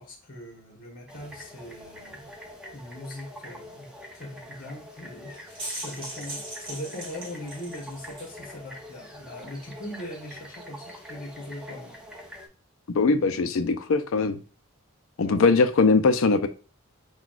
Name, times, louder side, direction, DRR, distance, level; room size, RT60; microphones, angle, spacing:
voice 1, 0.0-2.3 2.7-12.0 15.2-15.6, left 1 dB, 45° left, 0 dB, 1.2 m, -40 dB
sound 1, 1.1-12.5, left 1 dB, 5° right, 0.6 m, -45 dB
sound 2, 5.3-8.4, right 1 dB, 25° right, 1.4 m, -39 dB
voice 2, 12.9-14.4 15.2-16.5, left 4 dB, 70° left, 9 dB, 0.4 m, -21 dB
5.9 x 2.3 x 2.4 m, 0.36 s
head